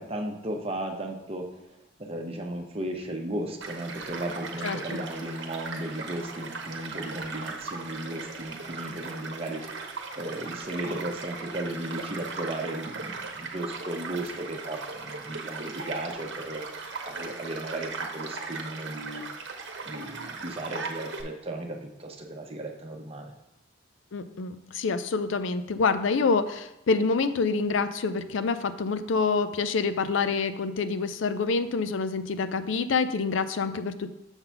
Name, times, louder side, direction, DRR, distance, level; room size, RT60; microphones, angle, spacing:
voice 1, 0.0-1.5 2.0-19.2 19.9-23.3, right 1 dB, 30° right, 2 dB, 0.9 m, -35 dB
Child speech kid speaking / Stream / Car passing by, 3.6-21.2, right 4 dB, 60° right, 1.0 m, -38 dB
voice 2, 4.6-5.0 24.1-34.1, left 4 dB, 75° left, 11 dB, 0.4 m, -27 dB
7.1 x 3.9 x 5.8 m, 0.88 s
head